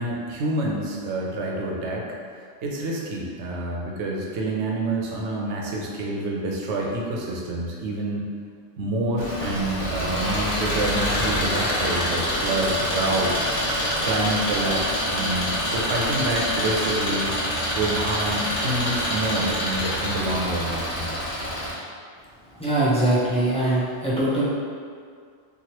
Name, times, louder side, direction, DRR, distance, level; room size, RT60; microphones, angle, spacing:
voice 1, 0.0-2.1 2.6-8.2 8.8-13.5 14.0-17.3 17.7-21.1, right 1 dB, 80° right, -2 dB, 0.9 m, -27 dB
Engine, 9.2-21.7, equal, 70° left, 1.2 m, -26 dB
voice 2, 22.6-24.4, right 1 dB, 10° left, -10 dB, 0.4 m, -22 dB
3.0 x 2.4 x 2.9 m, 2.1 s
omnidirectional pair, 1.2 m